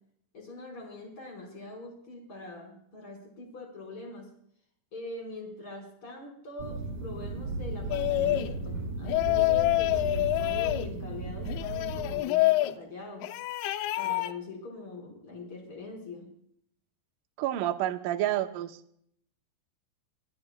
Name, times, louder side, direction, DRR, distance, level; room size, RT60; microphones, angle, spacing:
voice 1, 0.3-4.3 4.9-13.4 14.0-16.3, left 3 dB, 30° left, 1 dB, 5.4 m, -43 dB
sound 1, 6.6-12.2, right 2 dB, 60° right, 3.9 m, -35 dB
sound 2, 7.9-8.5 9.0-10.9 11.5-12.7 13.2-14.3, left 18 dB, 85° left, 2.2 m, -27 dB
voice 2, 17.4-18.8, right 13 dB, 85° right, 5 dB, 1.9 m, -29 dB
23.0 x 16.5 x 2.3 m, 0.67 s
omnidirectional pair, 5.1 m